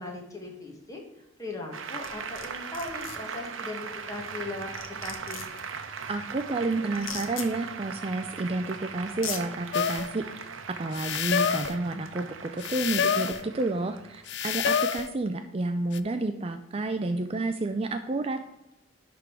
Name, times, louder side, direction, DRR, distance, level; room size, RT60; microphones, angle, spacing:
voice 1, 0.0-5.5, left 2 dB, 15° left, 0 dB, 1.7 m, -39 dB
Applause, 1.7-14.7, right 5 dB, 80° right, 0.8 m, -39 dB
sound 1, 2.0-2.5 2.7-3.2 4.4-4.5 4.7-5.6 6.9-7.5 8.6-8.7 9.1-9.4, left 7 dB, 85° left, 1.2 m, -37 dB
voice 2, 6.1-10.5 10.8-18.4, right 2 dB, 30° right, 7 dB, 0.4 m, -30 dB
sound 2, 9.7-10.1 10.9-11.8 12.6-13.4 14.3-15.1 15.9-16.0, left 7 dB, 60° left, 0.4 m, -27 dB
10.5 x 3.8 x 4.6 m, 0.92 s
head